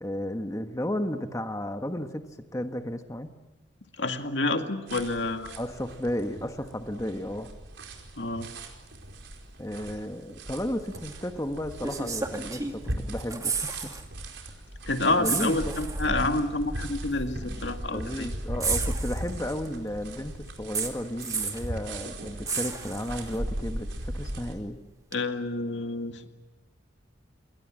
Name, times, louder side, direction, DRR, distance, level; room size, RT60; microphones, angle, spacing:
voice 1, 0.0-3.4 5.6-7.5 9.6-12.8 13.1-14.0 15.1-15.7 17.9-24.8, left 1 dB, 15° left, 6 dB, 1.3 m, -33 dB
voice 2, 4.0-5.6 8.2-8.5 14.9-18.3 25.1-26.3, left 2 dB, 75° left, 6 dB, 2.2 m, -28 dB
sound 1, 4.9-24.5, right 1 dB, 80° right, 4.9 m, -38 dB
sound 2, 10.9-11.1 11.8-12.9 13.2-14.0 14.3-14.5 15.2-16.1 17.1-17.2 18.6-19.7 20.7-21.7 22.5-23.4 25.1-25.2, right 5 dB, 20° right, 2.2 m, -32 dB
28.5 x 22.5 x 7.7 m, 1.1 s
head